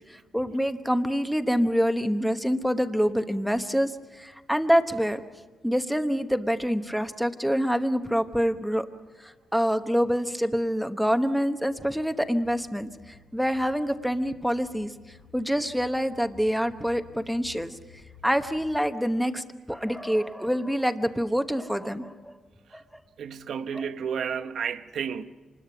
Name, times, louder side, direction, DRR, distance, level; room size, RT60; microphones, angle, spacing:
voice 1, 0.0-5.2 5.6-8.9 9.2-14.9 15.3-17.8 18.2-22.3 22.7-22.8 23.7-23.8, equal, ahead, 1.0 m, -26 dB
sound 1, 11.7-18.8, left 6 dB, 65° left, 4.0 m, -54 dB
voice 2, 23.2-25.2, right 7 dB, 65° right, 0.9 m, -32 dB
26.5 x 20.5 x 6.0 m
cardioid pair, 145°, 0 cm